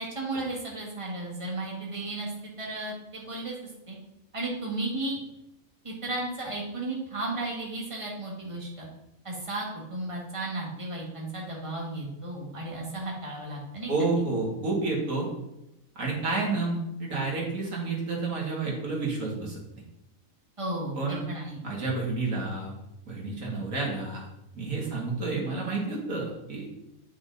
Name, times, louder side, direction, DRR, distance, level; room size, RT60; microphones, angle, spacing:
voice 1, 0.0-2.3 2.6-3.6 3.9-4.0 4.3-5.2 5.8-8.9 9.2-13.9 20.6-21.6, right 2 dB, 20° right, -3 dB, 2.0 m, -34 dB
voice 2, 13.9-15.3 16.0-19.6 21.0-21.2 21.6-22.7 23.1-24.3 24.5-26.7, right 3 dB, 70° right, -3 dB, 2.5 m, -30 dB
8.5 x 5.9 x 4.0 m, 0.87 s
omnidirectional pair, 1.5 m